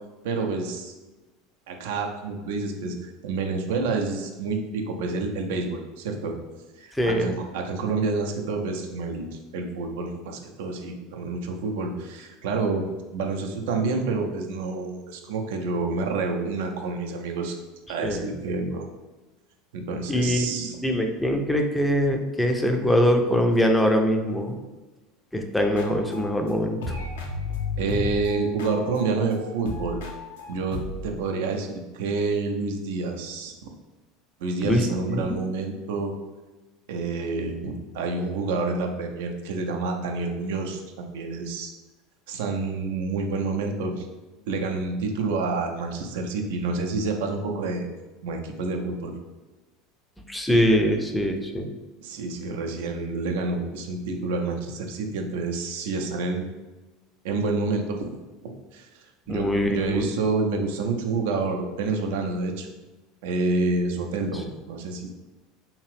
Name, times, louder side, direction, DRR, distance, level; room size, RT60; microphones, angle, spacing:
voice 1, 0.2-0.9 1.7-2.9 3.2-6.3 6.8-12.8 13.1-17.5 17.9-18.9 19.7-20.8 27.8-30.0 30.5-33.5 34.4-36.1 36.9-41.7 42.3-44.1 44.5-47.9 48.2-49.1 52.0-56.5 57.2-58.1 58.7-62.7 63.2-65.1, right 3 dB, 65° right, 3 dB, 0.4 m, -28 dB
voice 2, 6.9-7.3 18.0-18.3 20.1-24.6 25.3-26.9 34.6-34.8 35.1-35.4 50.3-51.7 59.3-60.1, equal, 5° left, 4 dB, 0.4 m, -23 dB
sound 1, 25.6-26.5 26.8-31.2, left 3 dB, 70° left, 0.5 m, -34 dB
2.8 x 2.4 x 3.2 m, 1.2 s
figure-of-eight pair, 75°, 0 cm